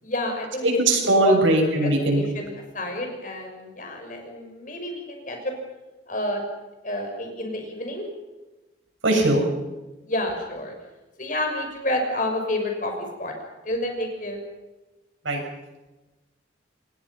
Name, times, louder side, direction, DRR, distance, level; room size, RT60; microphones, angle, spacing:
voice 1, 0.0-0.8 1.2-1.4 1.8-5.5 6.1-6.4 6.8-8.1 10.0-10.7 11.2-13.3 13.6-14.4, left 1 dB, 45° left, 3 dB, 6.0 m, -29 dB
voice 2, 0.6-2.2 9.0-9.4 15.3-15.4, right 1 dB, 90° right, 3 dB, 7.1 m, -20 dB
28.0 x 21.5 x 5.8 m, 1.1 s
head